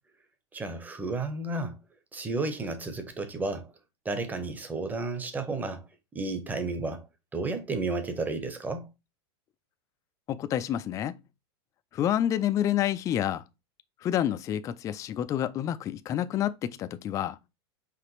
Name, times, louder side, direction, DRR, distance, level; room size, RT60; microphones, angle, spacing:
voice 1, 0.5-1.8 2.1-3.7 4.0-5.9 6.1-7.1 7.3-8.9, right 3 dB, 10° right, 0.8 m, -32 dB
voice 2, 10.3-11.2 11.9-13.4 14.0-17.4, left 11 dB, 25° left, 0.3 m, -28 dB
5.0 x 3.2 x 2.9 m
supercardioid pair, 140°, 14 cm